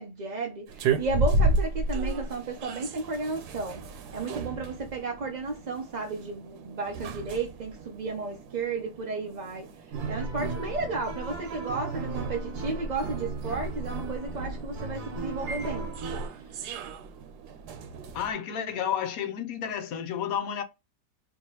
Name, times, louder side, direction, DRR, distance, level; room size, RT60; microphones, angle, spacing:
voice 1, 0.0-9.7 10.1-15.9 16.2-16.4, right 3 dB, 40° right, 0.6 m, -33 dB
sound 1, 0.7-18.3, right 2 dB, 90° right, 1.2 m, -34 dB
sound 2, 9.9-16.3, right 3 dB, 75° right, 1.3 m, -35 dB
voice 2, 18.1-20.6, left 8 dB, 70° left, 1.0 m, -31 dB
4.5 x 2.9 x 2.8 m
omnidirectional pair, 1.7 m